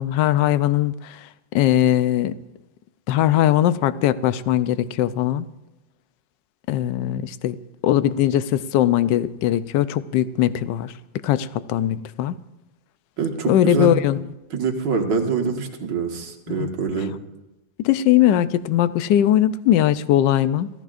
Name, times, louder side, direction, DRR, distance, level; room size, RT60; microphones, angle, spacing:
voice 1, 0.0-2.3 3.1-5.5 6.7-7.6 7.8-10.9 11.2-12.3 13.5-14.2 16.5-16.7 17.8-20.7, left 12 dB, 75° left, 1.2 m, -20 dB
voice 2, 13.2-14.0 14.5-17.1, right 5 dB, 65° right, 2.2 m, -25 dB
28.5 x 14.5 x 2.5 m
omnidirectional pair, 2.1 m